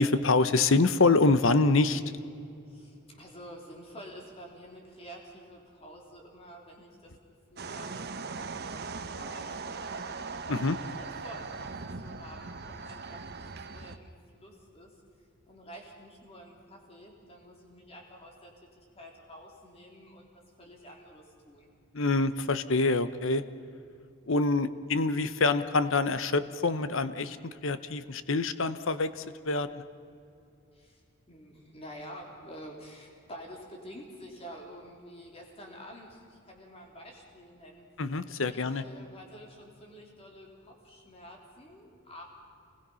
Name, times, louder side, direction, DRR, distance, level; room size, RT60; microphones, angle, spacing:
voice 1, 0.0-2.0 10.5-10.8 21.9-23.4 24.3-29.8 38.0-38.8, left 3 dB, 60° left, 12 dB, 0.9 m, -26 dB
voice 2, 2.7-7.1 7.5-8.2 8.7-10.1 10.5-15.0 15.5-21.7 30.7-37.9 38.5-42.2, equal, 25° left, 0 dB, 3.5 m, -49 dB
sound 1, 7.6-14.0, right 4 dB, 45° right, 0.9 m, -39 dB
28.5 x 20.5 x 5.7 m, 2.5 s
head